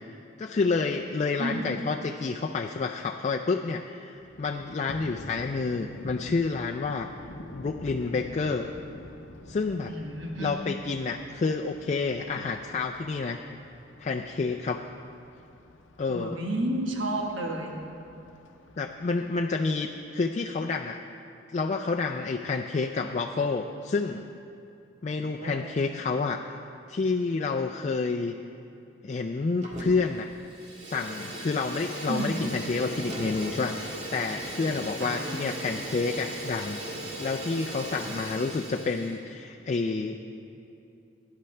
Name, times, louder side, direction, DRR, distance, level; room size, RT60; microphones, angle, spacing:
voice 1, 0.4-7.1 7.5-8.7 9.5-9.9 10.4-13.4 14.0-14.8 16.0-16.4 18.8-21.0 21.5-24.3 25.0-26.6 26.9-28.4 29.0-30.3 30.8-36.8 37.2-40.2, left 4 dB, 40° left, 3 dB, 0.4 m, -29 dB
voice 2, 1.4-1.7 9.9-10.6 16.1-17.7 25.2-25.6 32.1-32.4 35.0-35.5, right 1 dB, 85° right, 0 dB, 1.4 m, -31 dB
Thunder, 4.2-20.1, left 1 dB, 85° left, 0.7 m, -48 dB
Fire, 29.6-30.1 30.4-39.2, right 1 dB, 40° right, 1.8 m, -38 dB
17.0 x 10.5 x 3.3 m, 2.7 s
head